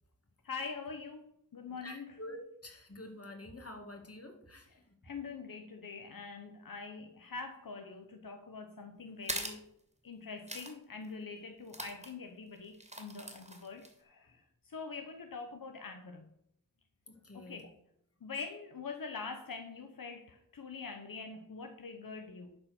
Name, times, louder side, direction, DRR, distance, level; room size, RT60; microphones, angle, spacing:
voice 1, 0.4-2.1 5.0-9.7 10.0-16.3 17.3-17.7 18.2-22.6, left 4 dB, 80° left, 6 dB, 1.0 m, -44 dB
voice 2, 1.8-5.0 9.4-9.5 14.3-14.4 17.1-17.7, left 1 dB, 45° left, 3 dB, 2.4 m, -48 dB
sound 1, 9.2-9.6 10.5-10.7 11.0-11.1 11.7-12.1 12.7-13.9, right 1 dB, 20° right, 2.4 m, -41 dB
11.5 x 4.3 x 7.0 m, 0.74 s
wide cardioid pair, 50°, 33 cm